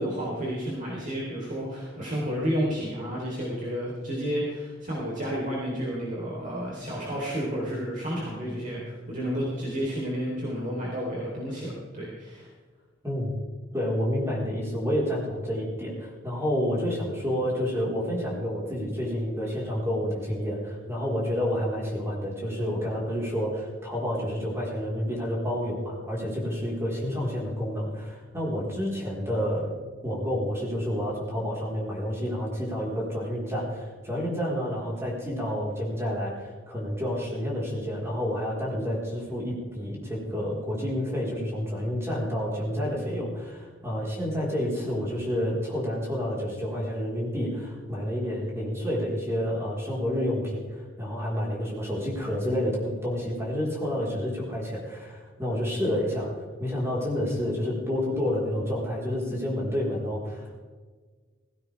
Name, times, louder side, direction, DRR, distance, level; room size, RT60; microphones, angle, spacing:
voice 1, 0.0-12.5, equal, 40° right, -5 dB, 3.7 m, -31 dB
voice 2, 13.0-13.3 13.7-56.3 56.6-60.6, equal, 15° right, -4 dB, 4.3 m, -29 dB
17.0 x 16.5 x 3.5 m, 1.5 s
head